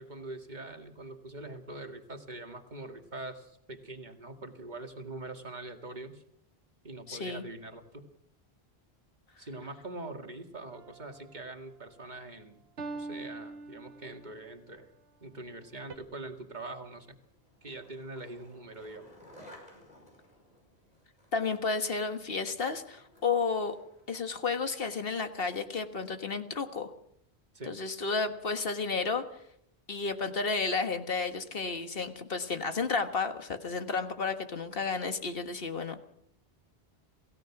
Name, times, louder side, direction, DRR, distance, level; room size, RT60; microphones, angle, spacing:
voice 1, 0.0-6.2 6.8-8.1 9.4-12.6 12.9-14.9 15.2-17.2 17.6-19.1 27.5-27.8, right 2 dB, 45° right, 5 dB, 2.1 m, -43 dB
voice 2, 7.1-7.4 21.3-23.8 24.1-26.9 27.7-29.2 29.9-36.0, left 4 dB, 60° left, 8 dB, 1.8 m, -32 dB
sound 1, 10.7-11.4 12.8-14.4 15.9-16.0, right 3 dB, 75° right, 1.4 m, -43 dB
Skateboard, 17.2-25.6, left 1 dB, 40° left, 5.5 m, -57 dB
28.0 x 16.0 x 6.0 m, 0.74 s
omnidirectional pair, 1.1 m